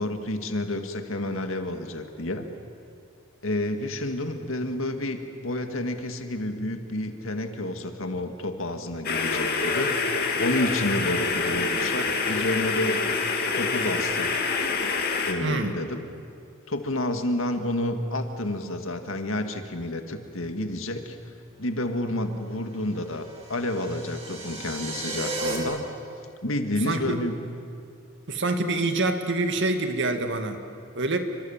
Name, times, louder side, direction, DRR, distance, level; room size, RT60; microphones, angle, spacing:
voice 1, 0.0-2.5 3.4-10.0 10.4-13.0 13.5-14.4 15.2-16.1 16.7-21.2 21.6-25.8 26.4-27.4, left 1 dB, 70° left, 6 dB, 2.1 m, -30 dB
sound 1, 9.0-15.3, left 4 dB, 50° left, 2.6 m, -26 dB
voice 2, 15.4-15.7 26.9-27.2 28.3-30.6 30.9-31.2, right 2 dB, 60° right, 7 dB, 2.1 m, -26 dB
sound 2, 23.0-25.6, right 3 dB, 30° right, 4.9 m, -34 dB
28.5 x 25.5 x 7.4 m, 2.4 s
head